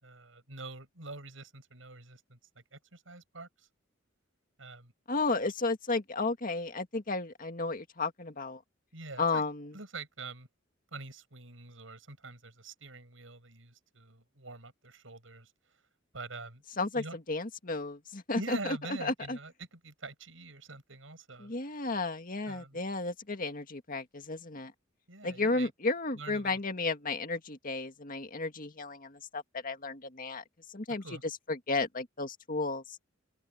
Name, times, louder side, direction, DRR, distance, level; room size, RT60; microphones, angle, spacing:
voice 1, 0.0-3.7 4.6-4.9 8.9-9.4 9.7-10.5 10.9-15.5 16.1-16.6 16.9-17.2 18.3-21.5 22.5-22.8 25.1-25.7 26.1-26.6 31.0-31.2, right 3 dB, 85° right, 6.3 m, -45 dB
voice 2, 5.1-8.6 9.2-9.7 16.8-19.4 21.4-24.7 25.2-30.4 30.7-31.0 31.5-33.0, left 3 dB, 45° left, 2.0 m, -33 dB
open air
head